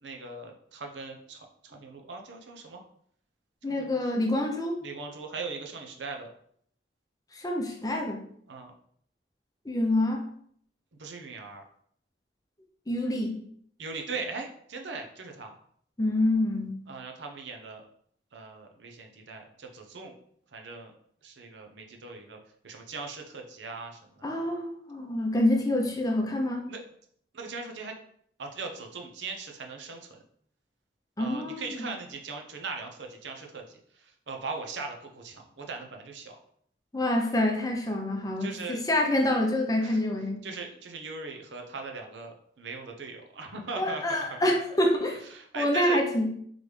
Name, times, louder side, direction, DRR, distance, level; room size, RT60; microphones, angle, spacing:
voice 1, 0.0-2.8 3.7-4.1 4.8-6.3 8.5-8.7 11.0-11.6 13.8-15.5 16.9-17.8 18.3-20.1 20.5-20.9 21.2-22.4 22.6-24.6 26.7-26.8 27.3-27.9 28.4-30.2 31.2-36.4 38.4-38.8 39.8-40.0 40.4-44.5 45.3-46.0, right 4 dB, 85° right, 3 dB, 0.7 m, -39 dB
voice 2, 3.6-4.8 7.3-8.2 9.6-10.2 12.9-13.4 16.0-16.8 24.2-26.7 31.2-31.9 36.9-40.4 43.8-45.2 45.5-46.3, left 1 dB, 20° left, 2 dB, 0.6 m, -27 dB
3.9 x 3.3 x 3.2 m, 0.64 s
head